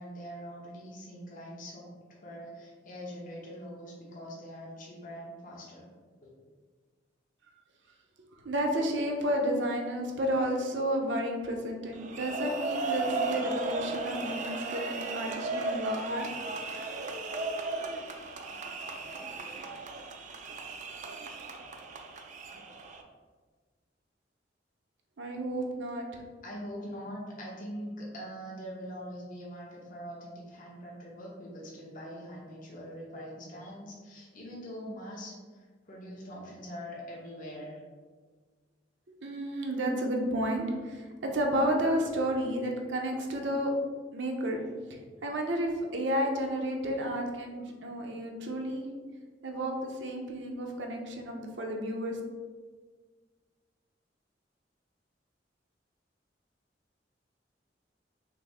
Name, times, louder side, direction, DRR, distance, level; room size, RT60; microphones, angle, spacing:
voice 1, 0.0-1.9 2.2-5.9 6.2-6.3 26.4-35.4 35.9-37.8, equal, 50° left, -4 dB, 0.9 m, -43 dB
voice 2, 8.4-16.3 25.2-26.1 39.2-43.7 44.1-44.6 45.2-48.8 49.4-52.2, equal, 80° right, 2 dB, 0.7 m, -31 dB
sound 1, 11.9-23.0, right 3 dB, 40° right, 0.4 m, -36 dB
5.7 x 2.0 x 3.5 m, 1.5 s
head